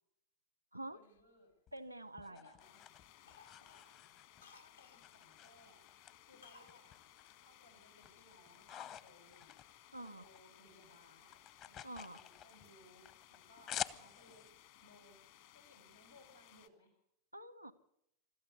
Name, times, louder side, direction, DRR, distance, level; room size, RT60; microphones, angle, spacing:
voice 1, 0.9-1.5 2.3-2.9 3.6-4.0 4.6-5.8 6.2-7.0 7.4-9.5 10.0-11.4 11.6-14.5 14.8-17.0, left 1 dB, 90° left, 3 dB, 7.0 m, -65 dB
Cough, 1.0-2.3 2.6-2.9 3.2-5.1 6.4-6.8 7.1-7.2, left 4 dB, 70° left, 0.9 m, -62 dB
sound 1, 1.7-4.5 5.0-6.1 6.4-7.5 7.8-10.4 10.7-14.5, left 9 dB, 35° left, 0.8 m, -49 dB
voice 2, 1.7-2.5 9.9-10.2 11.8-12.2 17.3-17.7, right 1 dB, 90° right, 17 dB, 1.0 m, -47 dB
sound 2, 2.6-16.7, left 13 dB, 55° left, 1.5 m, -62 dB
24.5 x 13.5 x 8.2 m, 0.79 s
figure-of-eight pair, 90°, 0 cm